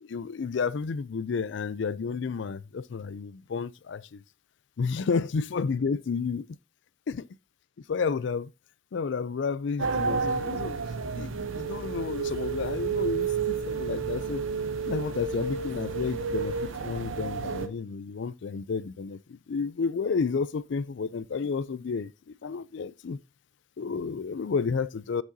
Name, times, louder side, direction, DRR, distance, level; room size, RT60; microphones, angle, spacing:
voice 1, 0.0-4.2 4.8-6.4 7.1-7.2 7.9-8.5 8.9-10.8 11.1-14.4 14.8-23.2 23.8-25.2, left 5 dB, 60° left, 0.4 m, -31 dB
sound 1, 9.8-17.7, right 5 dB, 75° right, 0.7 m, -31 dB
10.0 x 6.0 x 2.7 m
head